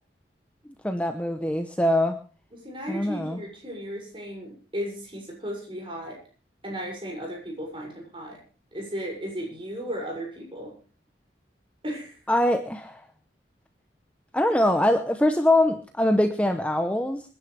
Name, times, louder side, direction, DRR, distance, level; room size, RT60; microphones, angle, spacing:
voice 1, 0.8-2.2 2.9-3.4 12.3-13.0 14.3-17.2, left 1 dB, 5° left, 6 dB, 0.9 m, -23 dB
voice 2, 2.5-6.2 6.6-8.4 8.7-10.7 11.8-12.2, equal, 30° right, -1 dB, 6.9 m, -35 dB
26.0 x 11.0 x 3.4 m, 0.37 s
head